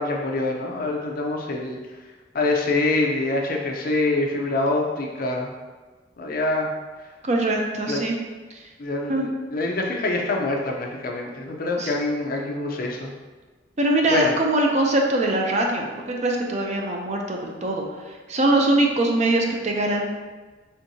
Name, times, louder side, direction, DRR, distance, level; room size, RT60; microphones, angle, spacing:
voice 1, 0.0-1.8 2.3-5.5 6.2-6.7 7.9-8.0 8.8-13.1 14.1-14.3, left 2 dB, 50° left, 1 dB, 0.6 m, -25 dB
voice 2, 7.2-8.2 8.5-8.6 9.1-9.3 11.8-11.9 13.8-20.1, right 2 dB, 40° right, 1 dB, 0.5 m, -22 dB
4.4 x 3.6 x 2.7 m, 1.3 s
head